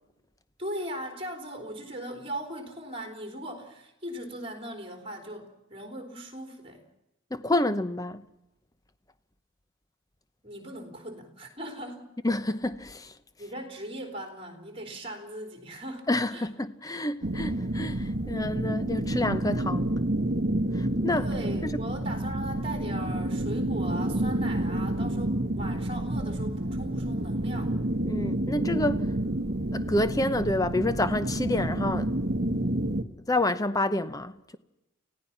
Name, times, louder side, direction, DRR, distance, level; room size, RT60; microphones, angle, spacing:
voice 1, 0.6-6.8 10.4-12.1 13.4-16.5 21.2-27.8, right 1 dB, 25° right, 3.6 m, -39 dB
voice 2, 7.3-8.2 12.2-13.1 16.1-19.9 20.7-21.3 21.6-21.7 28.0-29.0 29.7-32.1 33.3-34.6, left 1 dB, 15° left, 0.8 m, -28 dB
sound 1, 17.2-33.0, right 1 dB, 50° right, 1.2 m, -29 dB
29.0 x 16.5 x 5.9 m
head